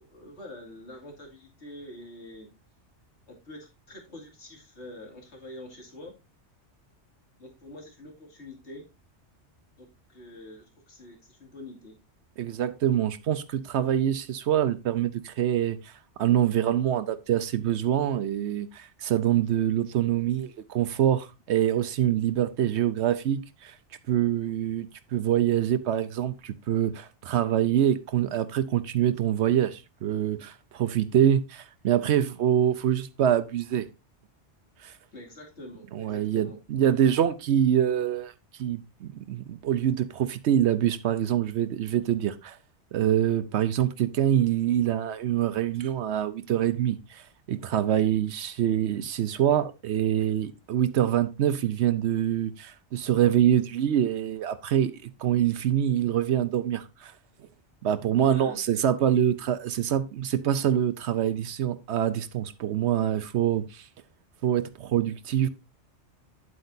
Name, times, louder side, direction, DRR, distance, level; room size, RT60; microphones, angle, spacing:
voice 1, 0.0-2.5 3.3-6.1 7.4-8.8 9.8-11.9 35.1-36.6 58.2-58.6, left 1 dB, 75° left, 2.7 m, -45 dB
voice 2, 12.4-15.9 16.2-23.7 24.1-33.9 34.8-34.9 35.9-38.3 38.6-42.6 42.9-57.1 57.8-63.8 64.4-65.5, right 10 dB, 75° right, 0.9 m, -25 dB
10.0 x 7.9 x 2.6 m
omnidirectional pair, 1.2 m